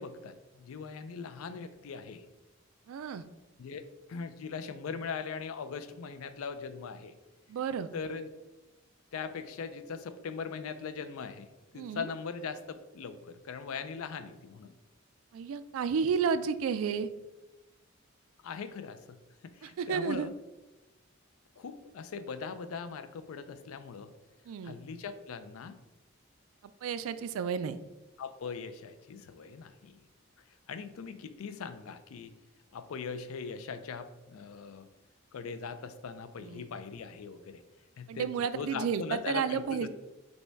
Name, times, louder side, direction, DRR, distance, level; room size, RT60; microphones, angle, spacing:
voice 1, 0.0-2.3 3.6-7.1 7.9-8.3 9.1-14.8 18.4-19.2 19.4-20.3 21.6-24.1 24.6-25.8 28.2-30.0 30.7-32.3 32.7-34.9 35.3-37.6 38.0-39.9, left 5 dB, 85° left, 11 dB, 0.4 m, -40 dB
voice 2, 2.9-3.2 7.5-7.9 11.7-12.1 15.3-17.1 19.6-20.3 24.5-24.8 26.8-27.8 36.4-36.7 38.1-39.9, right 6 dB, 80° right, 13 dB, 0.3 m, -32 dB
5.2 x 2.2 x 4.5 m, 1.1 s
head